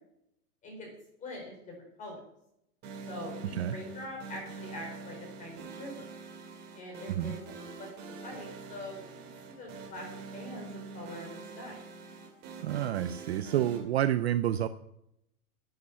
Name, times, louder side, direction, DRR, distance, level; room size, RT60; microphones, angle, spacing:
voice 1, 1.2-2.2 3.1-6.1 6.7-10.1 10.3-11.7, left 1 dB, 15° left, 1 dB, 4.7 m, -44 dB
sound 1, 2.8-13.8, right 4 dB, 20° right, 3.0 m, -45 dB
voice 2, 12.6-14.7, right 11 dB, 45° right, 11 dB, 0.5 m, -29 dB
12.5 x 8.7 x 8.6 m, 0.81 s
supercardioid pair, 170°, 46 cm